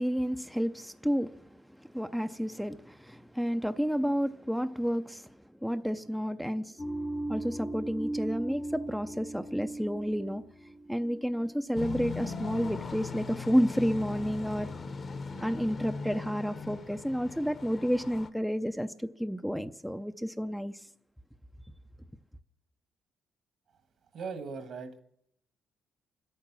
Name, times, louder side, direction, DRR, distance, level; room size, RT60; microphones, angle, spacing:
voice 1, 0.0-6.9 7.3-10.4 10.9-14.7 15.4-20.9, equal, ahead, 0.5 m, -31 dB
sound 1, 6.8-11.8, right 1 dB, 15° left, 0.9 m, -38 dB
sound 2, 11.8-18.3, left 4 dB, 45° left, 1.1 m, -39 dB
voice 2, 24.1-25.0, right 5 dB, 65° right, 1.6 m, -39 dB
26.0 x 8.7 x 6.1 m
cardioid pair, 90°, 0 cm